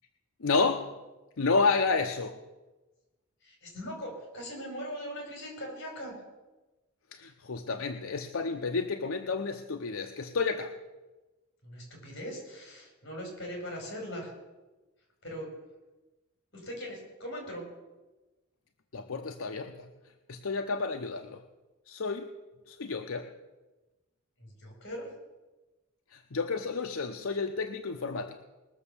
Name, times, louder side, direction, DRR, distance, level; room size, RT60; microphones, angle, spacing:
voice 1, 0.4-0.9 1.4-2.4 7.1-10.8 18.9-19.9 20.3-21.4 21.9-22.3 22.7-23.3 26.1-28.4, left 4 dB, 85° left, 6 dB, 0.7 m, -30 dB
voice 2, 3.4-6.1 11.6-14.3 15.2-15.5 16.5-17.7 24.4-25.1, equal, 55° left, 1 dB, 5.4 m, -40 dB
20.5 x 7.0 x 7.1 m, 1.1 s
head